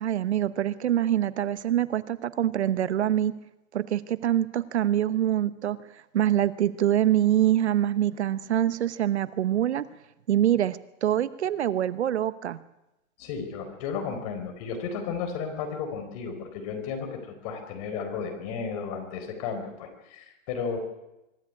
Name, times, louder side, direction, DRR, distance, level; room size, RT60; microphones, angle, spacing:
voice 1, 0.0-3.3 3.7-9.9 10.3-12.6, right 11 dB, 60° right, 15 dB, 1.0 m, -25 dB
voice 2, 13.2-20.8, left 6 dB, 30° left, 5 dB, 4.5 m, -33 dB
25.0 x 13.5 x 9.7 m, 0.95 s
hypercardioid pair, 160°, 39 cm